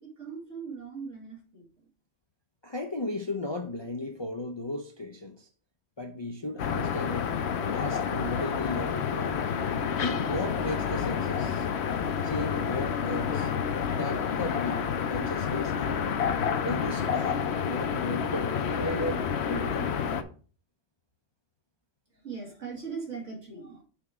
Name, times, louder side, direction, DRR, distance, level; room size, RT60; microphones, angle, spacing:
voice 1, 0.0-1.9 22.1-23.8, right 5 dB, 80° right, 2.7 m, -40 dB
voice 2, 2.6-5.5 6.0-7.4 7.7-9.4 10.0-11.7 12.2-13.5 13.9-16.1 16.6-19.9, left 1 dB, 35° left, 0.4 m, -35 dB
sound 1, 6.6-20.2, left 7 dB, 65° left, 0.9 m, -29 dB
6.2 x 4.5 x 4.8 m
omnidirectional pair, 1.3 m